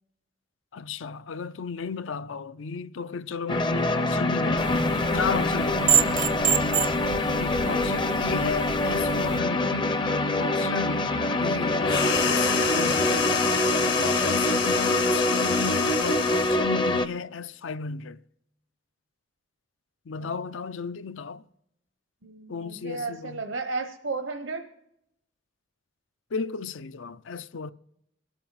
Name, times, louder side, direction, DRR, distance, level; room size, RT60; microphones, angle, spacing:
voice 1, 0.7-6.0 7.4-10.0 10.4-13.3 14.0-18.2 20.1-21.4 22.5-23.4 26.3-27.7, left 5 dB, 85° left, 0.5 m, -34 dB
sound 1, 3.5-17.1, left 2 dB, 25° left, 0.5 m, -25 dB
sound 2, 4.6-9.4, right 8 dB, 45° right, 0.4 m, -28 dB
sound 3, 11.8-16.7, left 7 dB, 65° left, 1.7 m, -29 dB
voice 2, 22.2-24.6, right 3 dB, 80° right, 0.9 m, -34 dB
25.5 x 8.8 x 4.1 m
head